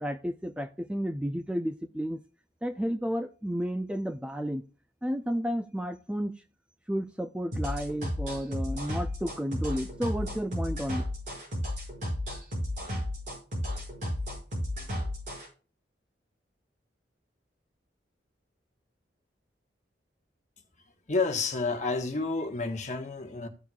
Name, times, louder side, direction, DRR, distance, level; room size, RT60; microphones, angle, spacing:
voice 1, 0.0-2.2 2.6-4.6 5.0-6.3 6.9-11.0, equal, 5° right, 0.4 m, -32 dB
sound 1, 7.5-15.5, left 1 dB, 45° right, 5.9 m, -33 dB
voice 2, 21.1-23.5, left 3 dB, 40° left, 1.3 m, -30 dB
15.0 x 6.9 x 2.4 m
head